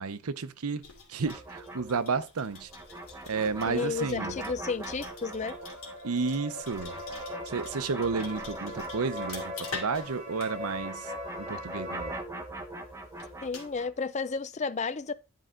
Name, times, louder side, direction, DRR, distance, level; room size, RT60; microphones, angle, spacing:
voice 1, 0.0-2.7 3.3-4.4 6.0-7.0 7.5-11.1 11.4-12.1, right 4 dB, 90° right, 0.7 m, -32 dB
sound 1, 0.8-13.8, left 4 dB, 70° left, 2.7 m, -47 dB
sound 2, 1.2-10.1 10.4-14.1, right 2 dB, 15° right, 1.1 m, -42 dB
sound 3, 2.9-12.2, left 1 dB, 35° right, 2.7 m, -41 dB
voice 2, 3.7-5.6 13.4-15.1, left 4 dB, 30° left, 0.4 m, -32 dB
10.5 x 5.5 x 3.7 m
head